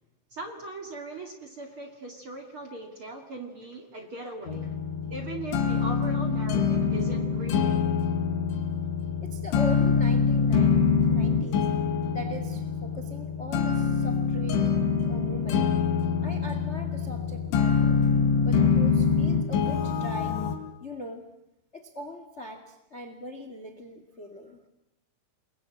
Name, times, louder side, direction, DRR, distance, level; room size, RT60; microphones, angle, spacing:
voice 1, 0.3-4.7 5.1-7.8, right 2 dB, 40° right, 4 dB, 2.0 m, -39 dB
sound 1, 4.5-20.6, left 6 dB, 90° left, 4.8 m, -25 dB
voice 2, 9.2-11.7 12.1-15.7 16.2-18.0 18.4-20.4 20.8-21.3 21.7-24.6, left 1 dB, 45° left, 7 dB, 0.9 m, -40 dB
29.0 x 20.5 x 8.7 m, 0.90 s
omnidirectional pair, 5.4 m